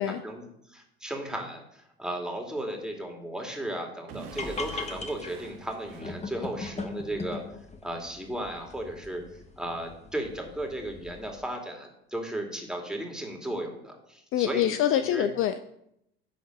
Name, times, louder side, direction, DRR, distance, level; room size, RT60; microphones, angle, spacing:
voice 1, 0.0-7.4 7.8-15.3, right 1 dB, ahead, 1 dB, 2.5 m, -35 dB
Explosion / Shatter, 4.1-6.9, right 6 dB, 75° right, 1.2 m, -48 dB
sound 1, 4.3-11.3, left 3 dB, 20° left, 1.4 m, -40 dB
voice 2, 14.3-15.6, left 11 dB, 45° left, 11 dB, 0.5 m, -25 dB
11.0 x 3.9 x 6.5 m, 0.77 s
hypercardioid pair, 65°, 29 cm